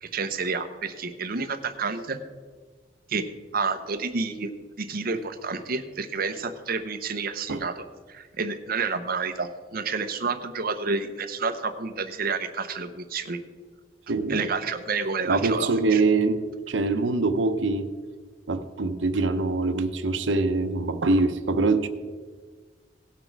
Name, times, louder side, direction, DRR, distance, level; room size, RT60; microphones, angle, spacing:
voice 1, 0.0-2.2 3.1-3.3 3.5-4.5 4.8-7.7 8.1-13.4 14.3-16.0, right 4 dB, 55° right, 10 dB, 0.8 m, -29 dB
voice 2, 14.1-14.4 15.3-17.9 18.5-21.9, right 3 dB, 90° right, 10 dB, 0.8 m, -24 dB
18.0 x 6.0 x 4.6 m, 1.5 s
head